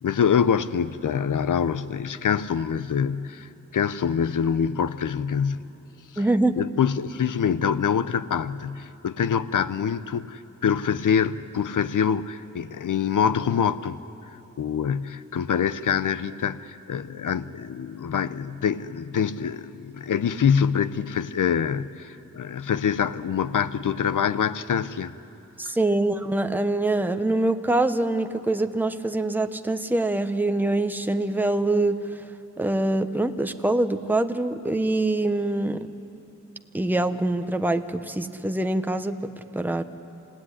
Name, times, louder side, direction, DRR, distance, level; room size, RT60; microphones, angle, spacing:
voice 1, 0.0-5.6 6.1-6.2 6.6-14.0 14.3-25.1 25.6-25.7, left 7 dB, 75° left, 15 dB, 0.8 m, -25 dB
voice 2, 6.2-6.5 25.6-32.2 32.6-35.9 36.7-39.8, right 2 dB, 5° right, 8 dB, 1.0 m, -24 dB
27.5 x 16.5 x 10.0 m, 3.0 s
wide cardioid pair, 80°, 32 cm